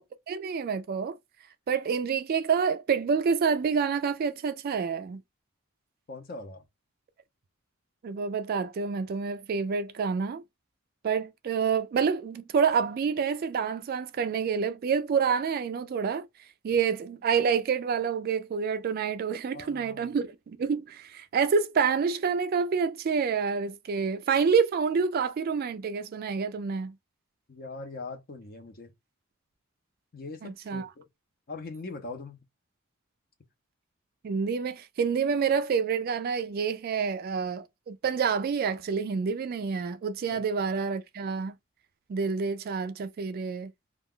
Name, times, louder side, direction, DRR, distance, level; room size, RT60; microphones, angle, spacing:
voice 1, 0.3-1.2 1.7-5.2 8.0-10.4 11.0-16.3 16.6-26.9 30.4-30.9 34.2-41.5 42.1-43.7, right 6 dB, 45° right, 0.3 m, -28 dB
voice 2, 6.1-6.6 19.5-20.2 27.5-28.9 30.1-31.1 31.5-32.4 40.3-40.4, left 3 dB, 45° left, 0.6 m, -41 dB
2.3 x 2.2 x 3.6 m
head